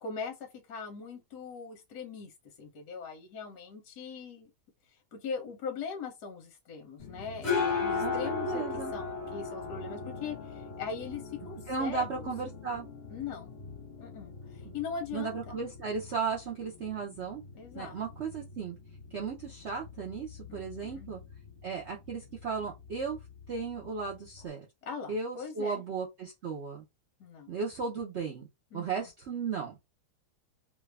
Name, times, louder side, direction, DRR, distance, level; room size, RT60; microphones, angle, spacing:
voice 1, 0.0-2.3 2.6-4.5 5.1-8.6 8.9-12.3 13.1-13.5 14.0-15.6 17.5-18.0 20.5-21.1 24.8-25.8 27.2-27.5 28.7-28.9, left 5 dB, 60° left, 1.2 m, -40 dB
sound 1, 7.0-24.5, left 4 dB, 40° left, 1.3 m, -39 dB
voice 2, 8.5-8.9 11.7-12.9 15.1-17.4 17.7-18.8 19.1-21.2 21.6-23.2 23.5-24.7 25.1-26.8 27.5-28.5 28.7-29.8, right 5 dB, 75° right, 0.6 m, -35 dB
3.2 x 2.4 x 3.2 m
omnidirectional pair, 2.2 m